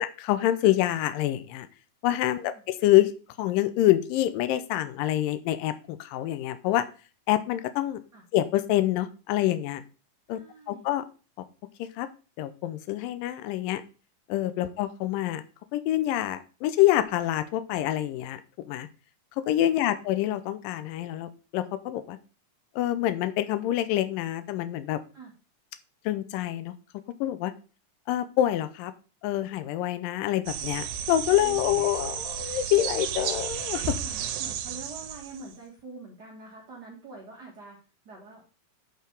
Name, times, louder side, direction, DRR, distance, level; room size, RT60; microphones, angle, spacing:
voice 1, 0.0-1.7 2.0-3.1 3.4-6.9 7.3-8.0 8.3-9.8 10.3-10.4 10.7-11.1 11.8-12.1 12.4-13.8 14.3-15.4 15.7-18.9 19.4-22.2 22.8-25.0 26.1-26.8 27.2-27.5 28.1-28.9 29.2-34.0, left 13 dB, 85° left, 12 dB, 2.3 m, -26 dB
voice 2, 10.3-10.9 14.6-14.7 19.7-20.0 25.1-25.3 31.4-31.8 33.9-37.8 38.0-38.5, right 3 dB, 45° right, -1 dB, 1.4 m, -45 dB
sound 1, 30.5-35.5, right 9 dB, 80° right, 2.3 m, -33 dB
8.1 x 4.6 x 5.2 m, 0.36 s
omnidirectional pair, 4.0 m